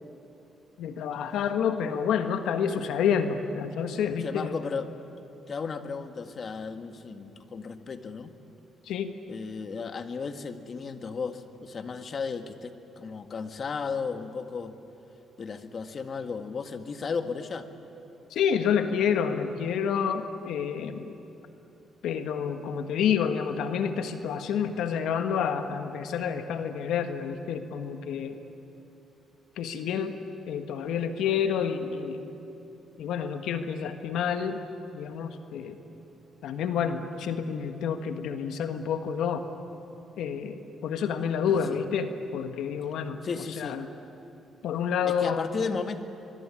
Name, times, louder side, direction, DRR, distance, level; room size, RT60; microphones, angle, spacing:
voice 1, 0.8-4.5 8.8-9.1 18.3-21.1 22.0-28.4 29.6-30.1 30.5-32.3 33.0-34.6 34.9-35.8 36.4-39.4 40.2-43.2 43.6-43.9 44.6-45.5, left 7 dB, 80° left, 7 dB, 1.5 m, -29 dB
voice 2, 4.2-4.9 5.5-8.3 9.3-14.7 15.4-17.7 41.5-41.8 43.2-43.8 45.1-46.0, left 5 dB, 45° left, 7 dB, 1.8 m, -34 dB
25.0 x 23.0 x 9.9 m, 2.9 s
cardioid pair, 90°, 0 cm